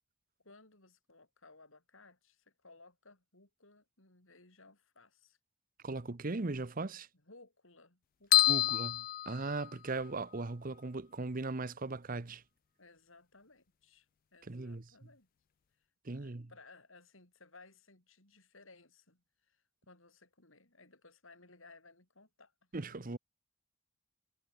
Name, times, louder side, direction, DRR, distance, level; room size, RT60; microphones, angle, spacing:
voice 1, 0.4-5.4 7.2-8.7 12.8-15.3 15.8-22.7, left 3 dB, 75° left, 7.3 m, -60 dB
voice 2, 5.8-7.1 8.5-12.4 14.5-14.8 16.0-16.5 22.7-23.2, right 3 dB, 45° right, 0.9 m, -38 dB
sound 1, 8.3-10.1, left 15 dB, 45° left, 0.3 m, -28 dB
head